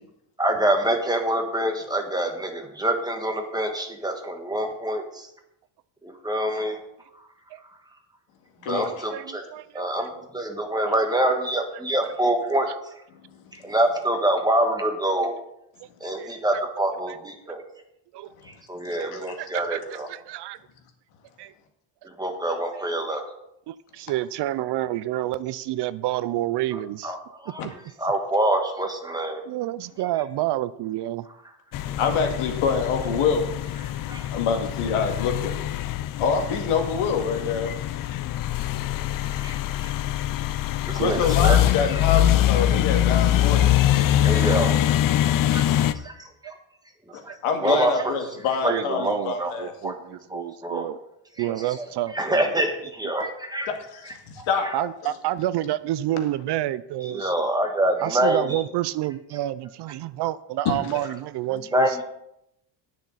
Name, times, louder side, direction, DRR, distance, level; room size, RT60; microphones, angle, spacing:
voice 1, 0.4-5.3 6.0-6.8 8.7-9.5 9.7-12.7 13.5-15.3 16.0-17.6 18.4-20.1 22.0-23.2 27.0-27.6 28.0-29.4 31.8-32.0 34.1-34.3 39.0-39.1 39.4-39.9 40.8-41.6 41.9-42.0 42.7-42.8 44.2-44.8 45.5-45.6 45.9-46.6 47.1-47.4 47.6-48.2 48.6-50.9 51.4-53.7 54.1-54.9 57.0-58.6 61.7-62.0, right 1 dB, 10° right, 4 dB, 1.4 m, -26 dB
voice 2, 9.1-9.9 16.2-16.3 17.1-17.2 18.1-18.3 19.0-19.1 19.4-20.6 21.4-21.5 23.7-27.1 27.6-27.7 29.5-31.3 41.0-41.3 47.3-47.4 47.6-47.8 48.7-51.0 51.4-52.4 53.2-53.3 54.7-57.3 58.0-61.9, right 14 dB, 55° right, 17 dB, 0.5 m, -29 dB
voice 3, 18.9-19.4 27.6-27.7 32.0-33.5 34.3-35.5 36.2-37.7 41.0-43.6 47.1-49.7 53.7-54.7 60.7-60.9, left 6 dB, 85° left, 3 dB, 2.2 m, -26 dB
sound 1, 31.7-45.9, left 12 dB, 45° left, 0.5 m, -23 dB
18.5 x 6.5 x 4.0 m, 0.79 s
cardioid pair, 145°, 49 cm